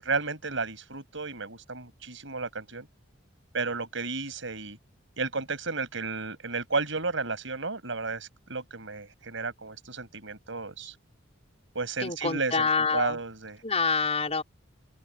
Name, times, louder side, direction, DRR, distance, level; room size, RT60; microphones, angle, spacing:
voice 1, 0.0-2.9 3.5-4.8 5.2-10.9 11.7-13.6, right 4 dB, 70° right, 7.8 m, -33 dB
voice 2, 12.0-13.2 13.6-14.4, left 4 dB, 35° left, 5.6 m, -26 dB
head